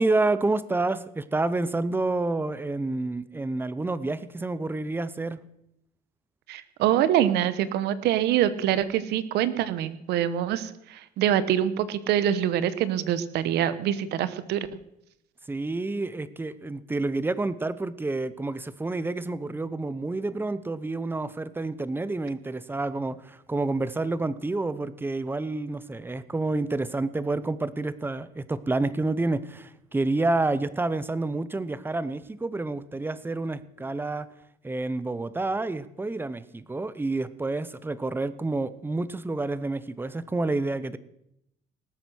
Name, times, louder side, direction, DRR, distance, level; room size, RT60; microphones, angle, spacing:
voice 1, 0.0-5.4 15.5-34.3 34.6-41.0, right 2 dB, 10° right, 16 dB, 0.8 m, -29 dB
voice 2, 6.5-14.7, right 11 dB, 80° right, 14 dB, 1.1 m, -25 dB
18.5 x 8.1 x 6.3 m, 0.80 s
cardioid pair, 110°, 17 cm